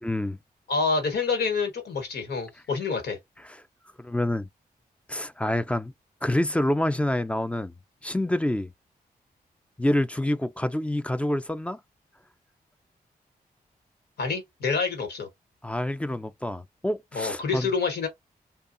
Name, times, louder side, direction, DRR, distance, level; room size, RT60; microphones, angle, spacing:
voice 1, 0.0-0.4 3.4-3.6 4.0-4.5 5.1-5.9 6.2-7.7 8.0-8.7 9.8-11.8 15.6-17.7, left 1 dB, 10° left, 0.3 m, -27 dB
voice 2, 0.7-3.2 14.2-15.3 17.1-18.1, left 4 dB, 85° left, 1.2 m, -27 dB
2.8 x 2.2 x 2.5 m
cardioid pair, 60°, 16 cm